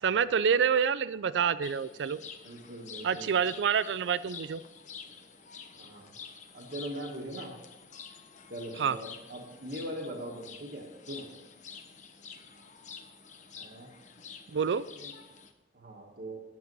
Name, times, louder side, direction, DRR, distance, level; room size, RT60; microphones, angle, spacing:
voice 1, 0.0-2.2 3.0-4.6 8.8-9.0 14.5-14.8, right 7 dB, 80° right, 16 dB, 0.4 m, -27 dB
sound 1, 1.6-15.5, left 6 dB, 45° left, 0.8 m, -49 dB
voice 2, 2.4-3.4 5.8-6.1 6.5-7.5 8.5-11.3 13.6-13.9 15.0-15.1 15.7-16.4, right 1 dB, 60° right, -3 dB, 1.2 m, -41 dB
9.4 x 7.3 x 5.3 m, 1.0 s
head